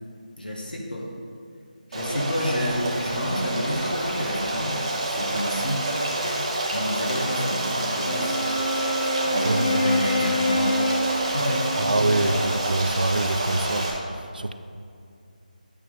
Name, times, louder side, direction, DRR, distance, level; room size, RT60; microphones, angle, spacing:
voice 1, 0.4-1.1 1.9-5.9 6.7-8.4 9.2-11.9, equal, 90° left, -1 dB, 1.5 m, -30 dB
Stream, 1.9-13.9, right 1 dB, 40° right, 1.1 m, -28 dB
Wind instrument woodwind instrument, 8.0-12.6, left 1 dB, 30° left, 0.7 m, -27 dB
voice 2, 9.4-9.8 11.8-14.5, right 2 dB, 80° right, 10 dB, 0.4 m, -25 dB
8.9 x 3.2 x 5.3 m, 2.4 s
figure-of-eight pair, 160°, 5 cm